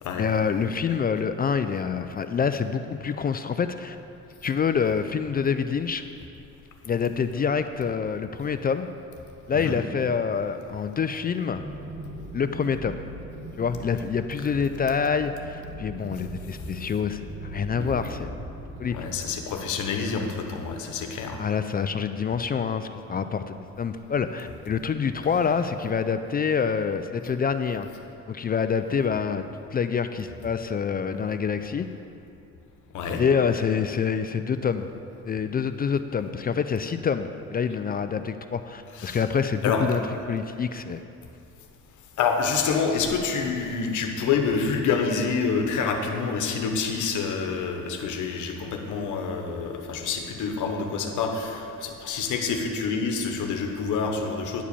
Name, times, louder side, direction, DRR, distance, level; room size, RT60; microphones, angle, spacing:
voice 1, 0.1-4.0 4.4-6.0 6.8-8.9 9.5-11.6 12.3-13.0 13.6-18.3 18.8-19.1 21.4-27.9 28.3-31.9 33.2-34.9 35.3-40.0 40.3-41.0, left 6 dB, 30° left, 9 dB, 0.4 m, -26 dB
sound 1, 11.5-20.8, right 2 dB, 30° right, 0.9 m, -40 dB
voice 2, 18.9-21.4 32.9-33.2 39.0-39.2 39.6-40.0 42.2-54.6, left 5 dB, 80° left, 4 dB, 1.0 m, -27 dB
10.0 x 4.8 x 6.8 m, 2.7 s
cardioid pair, 90°, 30 cm